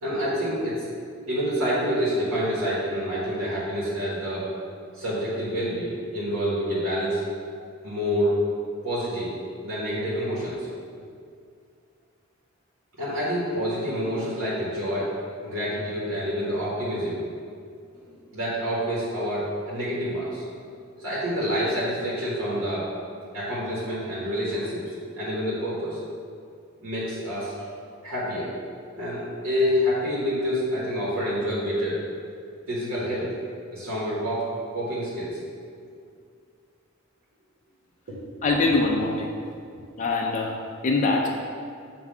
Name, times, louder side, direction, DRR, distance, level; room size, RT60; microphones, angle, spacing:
voice 1, 0.0-0.8 1.3-4.4 5.0-7.2 7.8-8.4 8.8-9.3 9.6-10.7 13.0-15.1 15.4-17.2 17.9-18.1 18.3-20.4 21.0-22.8 23.3-24.8 25.1-26.0 26.8-27.5 28.0-28.5 29.0-32.0 32.7-33.3 33.7-34.5 34.7-35.3, equal, 80° right, -8 dB, 1.4 m, -27 dB
voice 2, 38.4-39.3 40.0-40.6 40.8-41.3, left 3 dB, 35° left, -1 dB, 0.5 m, -23 dB
7.3 x 2.7 x 5.3 m, 2.3 s
head